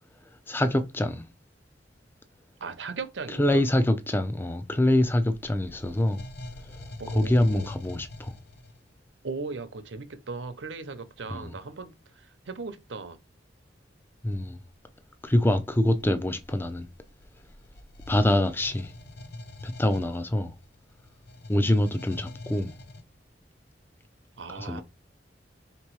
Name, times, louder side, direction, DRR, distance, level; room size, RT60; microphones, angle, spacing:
voice 1, 0.5-1.2 3.4-6.2 7.1-8.3 11.3-11.5 14.2-14.6 15.2-16.9 18.1-18.9 19.6-20.5 21.5-22.7 24.6-24.8, left 1 dB, 10° left, 0.4 m, -25 dB
voice 2, 2.6-3.6 7.0-7.7 9.2-13.2 24.4-24.8, right 4 dB, 85° right, 0.7 m, -38 dB
sound 1, 5.0-8.9 14.2-14.4 15.2-23.0, left 2 dB, 60° left, 0.6 m, -44 dB
3.3 x 3.0 x 4.6 m
head